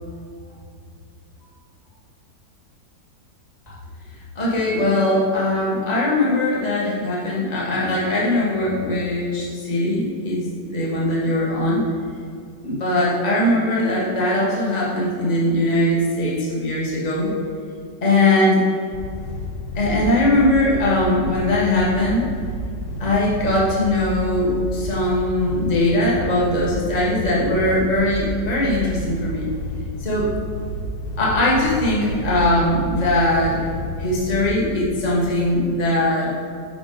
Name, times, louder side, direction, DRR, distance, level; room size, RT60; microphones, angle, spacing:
voice 1, 4.3-11.8 12.6-17.3 18.0-18.6 19.7-22.3 23.0-29.5 30.0-30.3 31.2-33.6 34.0-36.3, left 1 dB, 25° left, -5 dB, 1.5 m, -20 dB
sound 1, 18.9-35.5, equal, 80° left, 0.5 m, -30 dB
9.4 x 4.9 x 3.8 m, 2.3 s
omnidirectional pair, 2.0 m